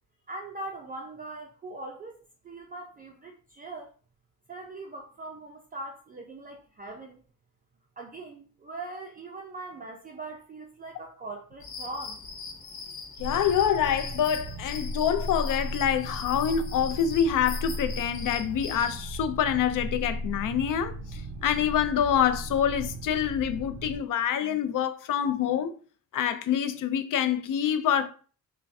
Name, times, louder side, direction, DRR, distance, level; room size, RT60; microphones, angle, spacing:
voice 1, 0.3-2.2 2.4-3.9 4.5-7.2 8.0-12.2, right 2 dB, 25° right, 0.4 m, -41 dB
sound 1, 11.6-19.0, left 5 dB, 75° left, 1.0 m, -41 dB
voice 2, 13.2-25.7 26.1-28.1, left 9 dB, 60° left, 0.5 m, -26 dB
sound 2, 13.2-24.0, right 1 dB, 45° right, 0.8 m, -36 dB
5.5 x 2.2 x 2.6 m
cardioid pair, 140°, 36 cm